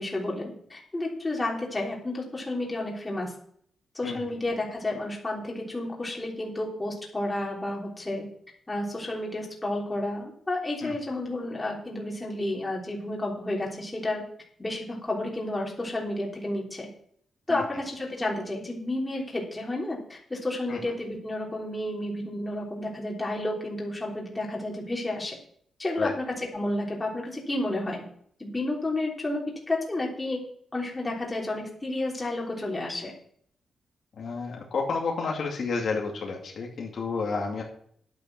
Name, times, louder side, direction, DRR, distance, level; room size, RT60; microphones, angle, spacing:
voice 1, 0.0-3.3 4.0-8.3 8.7-14.2 14.6-16.9 17.5-25.4 25.8-28.0 28.4-29.4 29.7-30.4 30.7-33.1, left 1 dB, 15° left, -2 dB, 3.4 m, -31 dB
voice 2, 34.2-37.6, left 4 dB, 55° left, -1 dB, 2.4 m, -30 dB
10.5 x 9.1 x 6.0 m, 0.63 s
wide cardioid pair, 135°, 0 cm